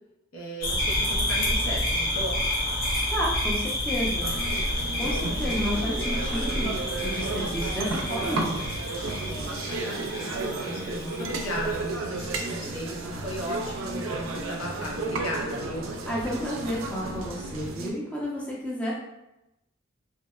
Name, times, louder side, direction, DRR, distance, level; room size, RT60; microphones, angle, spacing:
voice 1, 0.3-2.4 9.2-15.9, equal, 90° left, -2 dB, 0.6 m, -36 dB
sound 1, 0.6-11.8, left 1 dB, 45° left, 0.6 m, -29 dB
voice 2, 3.1-4.3 5.0-6.7 7.0-8.7 16.1-18.9, equal, 5° left, -6 dB, 0.5 m, -31 dB
sound 2, 4.2-17.9, right 2 dB, 70° right, 0.4 m, -33 dB
2.7 x 2.0 x 2.3 m, 0.90 s
head